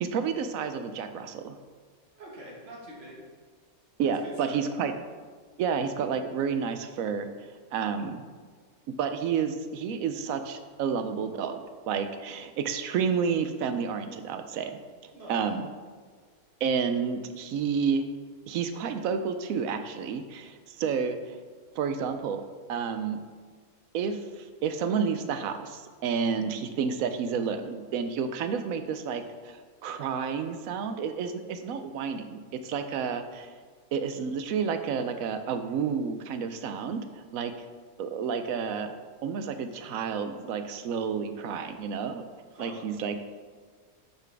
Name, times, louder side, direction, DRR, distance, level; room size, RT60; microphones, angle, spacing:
voice 1, 0.0-1.6 4.0-4.9 5.6-7.3 7.7-8.2 9.0-14.8 15.3-15.7 16.6-18.1 18.5-21.4 21.7-23.2 23.9-33.6 33.9-37.7 38.0-38.9 39.2-42.2 42.6-43.2, right 6 dB, 75° right, 8 dB, 1.0 m, -30 dB
voice 2, 2.1-3.2 4.2-4.6 15.1-15.4 42.5-42.8, right 1 dB, 45° right, -4 dB, 1.8 m, -44 dB
8.2 x 5.9 x 3.4 m, 1.5 s
omnidirectional pair, 1.5 m